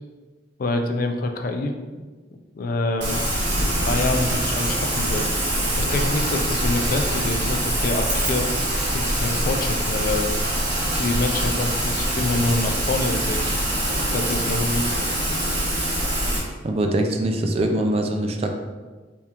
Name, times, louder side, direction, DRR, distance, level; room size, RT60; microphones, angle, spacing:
voice 1, 0.6-1.7 2.6-3.2 3.6-5.3 5.8-8.5 8.9-10.3 11.0-13.5 14.0-14.8, left 2 dB, 50° left, 5 dB, 0.4 m, -26 dB
Rain, 3.0-16.4, right 1 dB, 85° right, 1.4 m, -24 dB
voice 2, 16.6-18.6, right 1 dB, 35° right, 4 dB, 0.4 m, -23 dB
3.5 x 3.5 x 2.9 m, 1.3 s
head